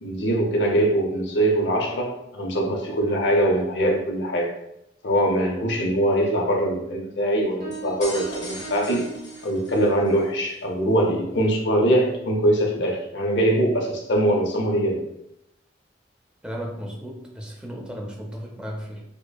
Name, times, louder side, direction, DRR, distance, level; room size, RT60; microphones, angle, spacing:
voice 1, 0.0-4.5 5.0-9.0 9.4-15.0, right 1 dB, 70° left, 0 dB, 0.7 m, -22 dB
Piano, 7.6-10.0, right 6 dB, 35° right, 1.1 m, -39 dB
sound 1, 7.7-10.2, left 1 dB, 40° left, 0.8 m, -40 dB
voice 2, 16.4-19.0, equal, 5° right, -1 dB, 0.5 m, -35 dB
4.8 x 2.1 x 2.3 m, 0.81 s
head